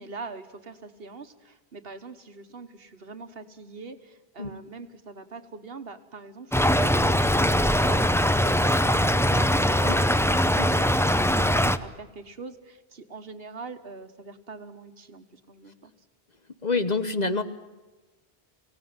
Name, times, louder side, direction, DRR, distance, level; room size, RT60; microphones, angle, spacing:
voice 1, 0.0-15.9, right 4 dB, 60° right, 9 dB, 1.6 m, -43 dB
Stream / Trickle dribble, 6.5-11.8, equal, 5° left, 0.5 m, -21 dB
voice 2, 16.6-17.4, left 3 dB, 40° left, 10 dB, 1.1 m, -26 dB
25.0 x 17.5 x 9.6 m, 1.2 s
omnidirectional pair, 1.1 m